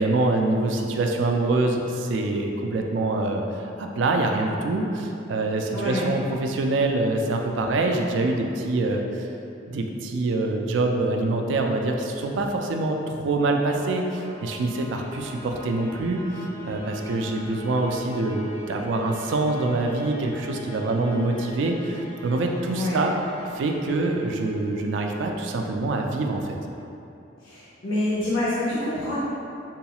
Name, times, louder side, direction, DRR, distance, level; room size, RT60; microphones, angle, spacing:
voice 1, 0.0-9.3 9.7-16.2 16.6-23.2 23.5-26.6, right 2 dB, 65° right, 3 dB, 0.3 m, -25 dB
voice 2, 5.7-6.1 22.7-23.0 27.4-29.1, left 1 dB, 75° left, -8 dB, 0.5 m, -27 dB
sound 1, 12.3-25.3, equal, 10° left, 0.5 m, -44 dB
Bowed string instrument, 15.0-19.3, left 1 dB, 35° right, 0.7 m, -43 dB
3.9 x 2.3 x 2.8 m, 2.8 s
head